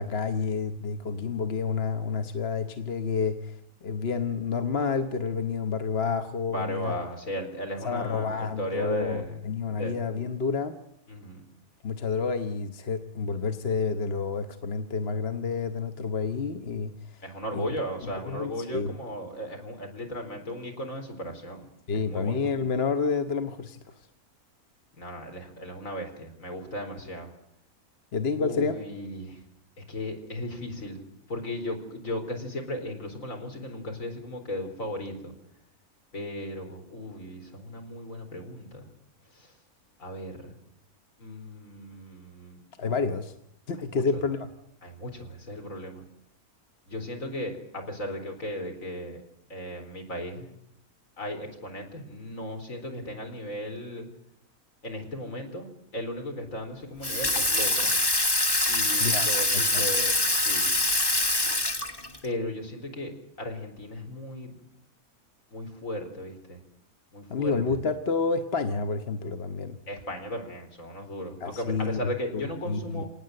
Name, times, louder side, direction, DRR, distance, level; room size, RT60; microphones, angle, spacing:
voice 1, 0.0-3.6 3.8-6.9 7.8-10.8 11.8-17.2 17.5-17.7 18.0-19.0 21.9-23.8 28.1-28.8 42.8-43.3 43.7-44.5 59.0-59.3 59.5-59.9 67.3-69.8 71.4-73.0, left 5 dB, 45° left, 8 dB, 1.2 m, -29 dB
voice 2, 6.5-9.4 9.7-10.0 11.1-11.4 17.2-21.7 21.9-22.5 25.0-27.3 28.4-29.4 29.9-31.0 31.3-35.3 36.1-38.8 40.0-40.5 41.2-42.6 43.9-44.2 44.8-46.0 46.9-49.2 49.5-50.5 51.2-54.1 54.8-57.9 58.7-60.7 62.2-63.1 63.4-64.6 65.5-66.6 67.1-67.8 69.9-73.1, equal, 60° left, 4 dB, 4.3 m, -36 dB
Water tap faucet / Sink (filling or washing), 57.0-62.3, left 2 dB, 15° left, 1.3 m, -24 dB
27.0 x 19.0 x 7.7 m, 0.76 s
omnidirectional pair, 1.6 m